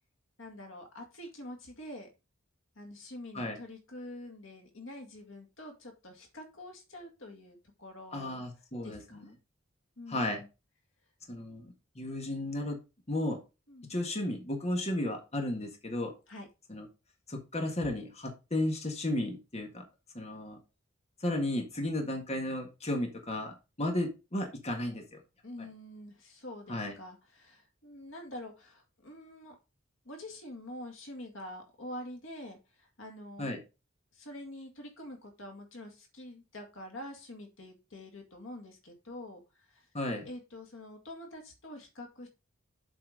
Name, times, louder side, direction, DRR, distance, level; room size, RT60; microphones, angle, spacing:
voice 1, 0.4-2.1 2.8-8.4 8.8-9.3 10.0-10.5 13.7-14.0 16.3-16.5 25.4-29.6 30.0-33.6 34.1-39.9 40.2-42.3, left 1 dB, 90° left, 3 dB, 2.2 m, -46 dB
voice 2, 8.1-9.3 10.1-10.4 11.3-12.8 13.1-13.4 13.9-16.1 16.7-16.9 17.3-19.8 20.1-20.6 21.2-25.2 26.7-26.9 33.4-33.6 39.9-40.3, left 1 dB, 35° left, 3 dB, 1.7 m, -34 dB
7.7 x 4.6 x 5.0 m, 0.28 s
head